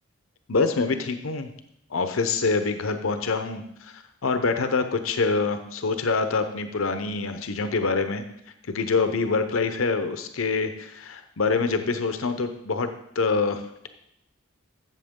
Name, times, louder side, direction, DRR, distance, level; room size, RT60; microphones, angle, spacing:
voice 1, 0.5-1.5 1.9-8.2 8.7-12.9 13.2-13.9, left 4 dB, 80° left, 8 dB, 0.7 m, -25 dB
13.0 x 7.5 x 3.7 m, 0.79 s
head